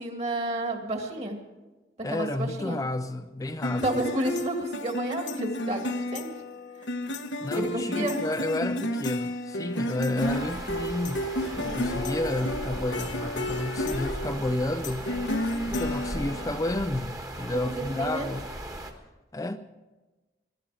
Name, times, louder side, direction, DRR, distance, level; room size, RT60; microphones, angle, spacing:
voice 1, 0.0-1.4 2.1-2.8 3.8-6.3 7.5-8.2 11.6-11.8 17.5-18.3, right 1 dB, 35° right, 2.1 m, -31 dB
voice 2, 2.0-3.9 7.4-11.3 11.6-15.1 15.7-18.5 19.3-19.6, left 1 dB, 20° left, 0.4 m, -31 dB
sound 1, 3.6-16.8, left 1 dB, 85° left, 1.1 m, -32 dB
sound 2, 10.2-18.9, right 1 dB, 20° right, 1.4 m, -38 dB
21.5 x 12.5 x 4.9 m
head